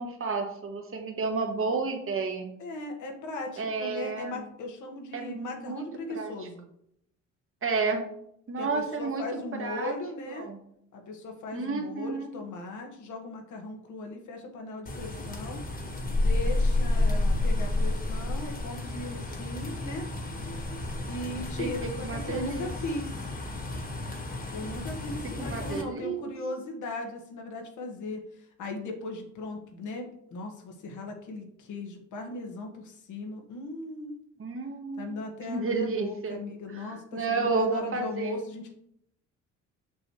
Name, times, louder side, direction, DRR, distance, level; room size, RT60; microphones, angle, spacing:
voice 1, 0.0-2.5 3.6-4.4 5.1-5.8 6.1-6.3 7.6-8.0 8.5-9.2 9.6-9.9 10.3-10.6 11.5-12.3 21.6-21.7 22.0-22.7 25.4-26.3 34.4-35.2 35.5-36.4 36.8-38.3, right 4 dB, 45° right, 3 dB, 1.5 m, -31 dB
voice 2, 2.6-6.7 8.6-10.5 10.9-15.6 16.1-20.1 21.1-23.2 24.5-34.2 35.0-38.7, left 2 dB, 80° left, 2 dB, 1.5 m, -38 dB
sound 1, 14.9-25.8, left 2 dB, 30° left, 1.5 m, -30 dB
6.2 x 6.1 x 3.1 m, 0.74 s
cardioid pair, 90°, 30 cm